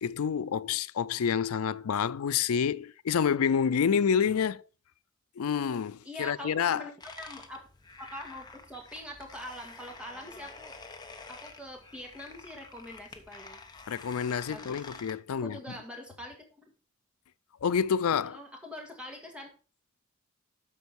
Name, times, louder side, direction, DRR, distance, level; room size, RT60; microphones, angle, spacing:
voice 1, 0.0-4.6 5.4-6.8 13.9-15.6 17.6-18.4, left 7 dB, 90° left, 0.4 m, -28 dB
voice 2, 6.0-7.7 8.0-10.8 11.3-13.6 14.5-14.8 15.4-16.7 18.2-19.5, equal, 5° right, 1.9 m, -44 dB
sound 1, 7.0-15.1, left 4 dB, 20° left, 0.9 m, -49 dB
12.5 x 4.5 x 4.6 m
head